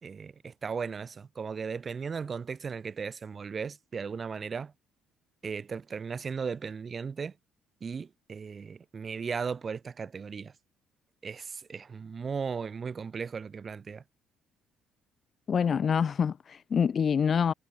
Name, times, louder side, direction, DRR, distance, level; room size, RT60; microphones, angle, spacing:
voice 1, 0.0-4.7 5.4-7.3 7.8-10.5 11.2-14.0, right 5 dB, 35° right, 3.8 m, -36 dB
voice 2, 15.5-17.5, left 7 dB, 45° left, 1.7 m, -26 dB
cardioid pair, 95°, 0 cm